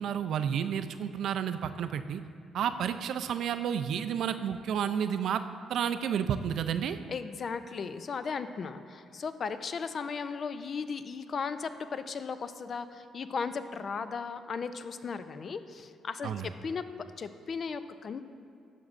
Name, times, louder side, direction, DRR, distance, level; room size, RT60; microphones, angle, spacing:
voice 1, 0.0-2.2 2.5-5.4 5.7-7.0 16.2-16.5, right 8 dB, 70° right, 10 dB, 0.3 m, -31 dB
voice 2, 7.1-16.8 17.2-18.3, left 5 dB, 50° left, 11 dB, 0.4 m, -36 dB
12.0 x 6.0 x 2.5 m, 2.4 s
cardioid pair, 90°, 0 cm